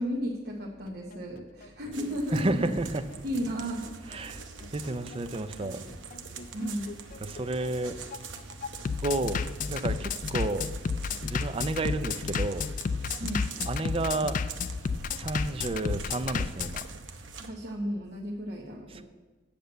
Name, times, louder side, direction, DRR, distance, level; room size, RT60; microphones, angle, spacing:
voice 1, 0.0-2.6 3.2-4.3 6.5-6.9 13.2-13.4 17.4-19.0, equal, 55° right, 1.1 m, -34 dB
Bass drum, 0.9-16.8, left 5 dB, 45° left, 0.4 m, -32 dB
sound 1, 1.9-17.5, right 4 dB, 75° right, 0.9 m, -44 dB
voice 2, 2.3-3.1 4.0-4.4 4.7-5.8 7.2-8.0 9.0-10.7 11.2-12.7 13.6-14.4 15.1-16.9 18.9-19.0, right 2 dB, 30° right, 0.5 m, -31 dB
8.6 x 6.8 x 7.9 m
head